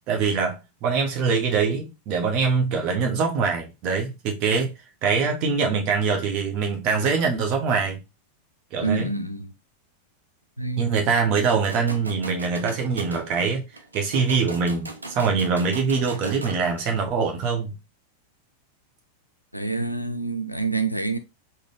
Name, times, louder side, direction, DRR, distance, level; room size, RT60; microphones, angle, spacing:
voice 1, 0.1-4.7 5.0-8.0 8.7-9.1 10.8-13.6 13.9-17.7, right 5 dB, 40° right, 0.8 m, -23 dB
voice 2, 8.8-9.5 10.6-10.9 11.3-11.4 19.5-21.2, right 3 dB, 90° left, 0.3 m, -27 dB
sound 1, 11.3-16.9, right 2 dB, 80° right, 0.6 m, -39 dB
3.8 x 2.1 x 3.5 m
figure-of-eight pair, 90°, 0 cm